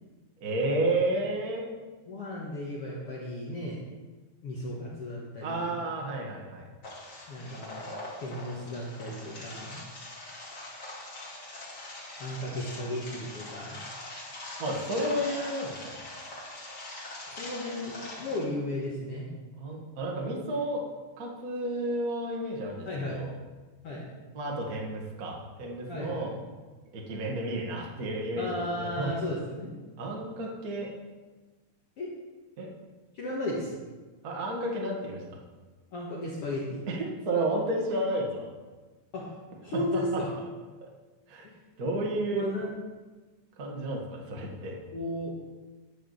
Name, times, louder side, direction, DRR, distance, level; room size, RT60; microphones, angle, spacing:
voice 1, 0.4-1.7 5.4-6.6 14.6-16.0 19.6-20.8 21.2-23.3 24.3-26.3 26.9-29.1 30.0-30.9 32.6-32.7 34.2-35.2 36.9-38.5 39.9-40.2 41.3-41.5 41.8-42.4 43.6-44.8, right 1 dB, 35° right, -1 dB, 1.6 m, -31 dB
voice 2, 2.1-3.8 4.4-5.8 7.3-7.9 8.2-9.8 12.2-13.8 17.3-19.3 22.9-23.2 23.8-24.0 25.9-26.3 28.4-29.7 32.0-32.1 33.1-33.8 35.9-36.9 39.1-39.3 39.6-40.3 41.4-41.5 42.3-42.8 44.9-45.3, left 1 dB, 50° left, -5 dB, 2.2 m, -34 dB
sound 1, 6.8-18.4, left 2 dB, 35° left, 2.7 m, -42 dB
11.0 x 5.9 x 7.1 m, 1.3 s
omnidirectional pair, 3.6 m